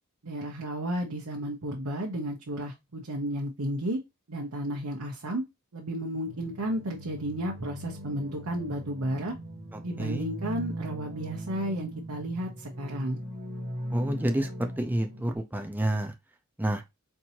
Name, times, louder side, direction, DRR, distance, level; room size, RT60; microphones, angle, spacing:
voice 1, 0.2-4.0 4.3-5.4 5.7-9.4 9.8-13.2, right 1 dB, 80° right, 0.8 m, -33 dB
sound 1, 6.3-15.4, equal, 45° right, 1.0 m, -39 dB
voice 2, 9.7-10.3 13.9-16.1 16.6-16.8, right 1 dB, 10° right, 0.5 m, -29 dB
4.4 x 2.7 x 2.8 m
head